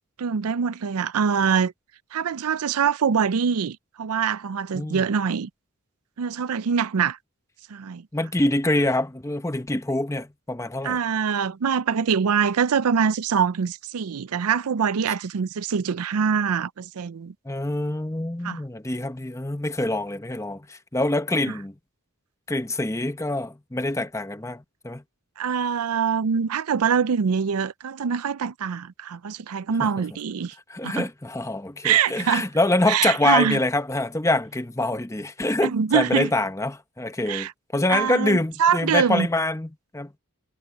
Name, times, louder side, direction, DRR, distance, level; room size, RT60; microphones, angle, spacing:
voice 1, 0.2-1.7 2.1-5.5 6.2-7.2 7.7-8.0 10.8-17.3 18.4-18.6 25.4-30.5 30.8-31.0 31.8-32.5 32.9-33.6 35.6-36.3 37.3-37.5 37.9-39.3, right 7 dB, 85° right, 0.5 m, -24 dB
voice 2, 4.7-5.0 8.1-11.0 17.4-21.7 22.5-25.0 29.8-29.9 30.7-40.1, left 2 dB, 15° left, 0.8 m, -25 dB
head